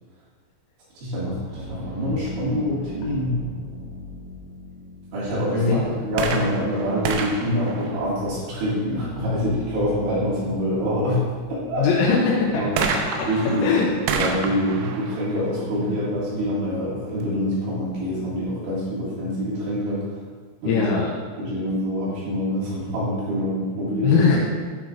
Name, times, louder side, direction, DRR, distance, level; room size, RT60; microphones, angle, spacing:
sound 1, 1.0-12.6, left 1 dB, 45° left, 1.6 m, -40 dB
voice 1, 1.0-3.4 5.1-11.2 11.5-11.9 12.5-12.7 13.3-13.7 14.1-20.2 20.6-20.9 21.4-24.2, equal, 70° right, -9 dB, 4.4 m, -25 dB
sound 2, 6.1-8.7 12.8-16.4 17.2-17.3, right 5 dB, 85° right, 2.6 m, -30 dB
voice 2, 11.7-12.7 13.6-13.9 20.7-21.1 24.0-24.4, left 5 dB, 85° left, -4 dB, 3.5 m, -20 dB
Sink (filling or washing), 12.7-14.7 15.0-15.3 15.7-15.8, left 2 dB, 65° left, 2.2 m, -36 dB
10.5 x 5.8 x 2.5 m, 1.6 s
omnidirectional pair, 5.9 m